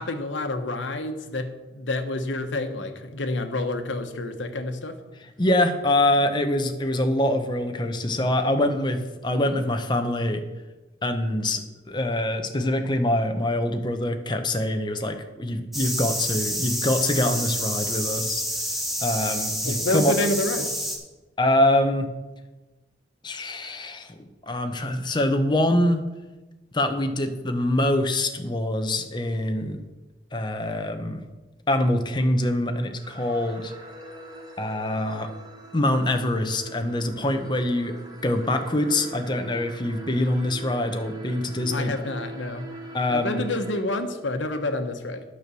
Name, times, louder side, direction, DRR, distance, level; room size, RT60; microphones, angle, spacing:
voice 1, 0.0-5.0 19.6-20.7 41.7-42.7 43.1-45.2, left 2 dB, 85° left, 7 dB, 1.1 m, -28 dB
voice 2, 5.4-10.4 11.0-18.4 19.0-20.1 21.4-22.1 23.2-24.1 24.5-26.0 26.7-29.8 30.3-31.2 31.7-33.7 34.6-35.3 35.7-37.9 38.2-41.9 42.9-43.4, left 1 dB, 25° left, 6 dB, 0.9 m, -24 dB
sound 1, 15.7-21.0, equal, ahead, 1.5 m, -28 dB
sound 2, 33.0-43.8, right 2 dB, 20° right, 1.5 m, -42 dB
9.9 x 6.1 x 6.8 m, 1.1 s
head